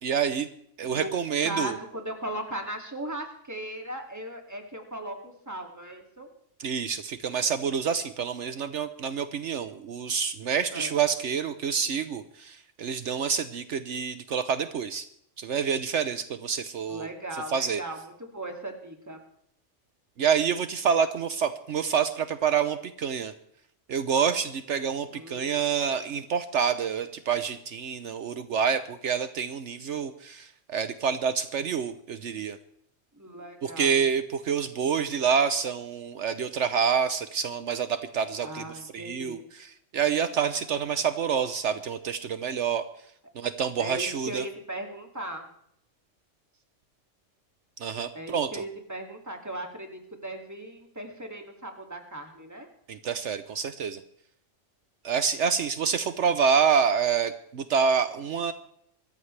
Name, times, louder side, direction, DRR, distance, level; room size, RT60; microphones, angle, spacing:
voice 1, 0.0-0.5 0.8-1.8 6.6-15.0 15.4-17.1 17.5-17.8 20.2-23.3 23.9-32.6 33.6-38.6 38.9-42.9 43.3-44.4 47.8-48.6 52.9-54.0 55.0-58.5, right 7 dB, 70° right, 11 dB, 1.1 m, -27 dB
voice 2, 1.4-6.3 10.7-10.9 16.9-19.2 25.1-26.1 33.1-33.9 38.4-39.5 43.8-45.5 48.1-52.7, right 1 dB, 15° right, 3 dB, 2.4 m, -38 dB
25.0 x 14.0 x 3.3 m, 0.70 s
omnidirectional pair, 1.3 m